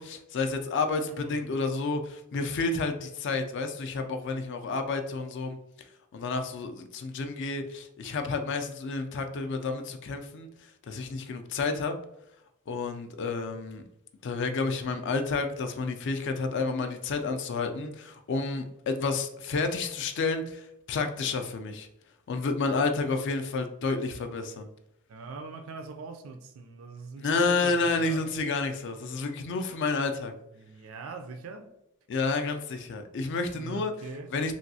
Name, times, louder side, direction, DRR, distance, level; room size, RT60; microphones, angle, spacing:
voice 1, 0.0-5.6 6.1-10.5 10.9-11.9 12.7-13.8 14.2-21.9 22.3-24.7 27.2-30.3 32.1-33.9 34.3-34.5, left 3 dB, 55° left, 0.4 m, -30 dB
voice 2, 25.1-28.2 30.5-31.7 33.5-34.3, right 4 dB, 65° right, 0.3 m, -42 dB
3.1 x 2.6 x 2.6 m
head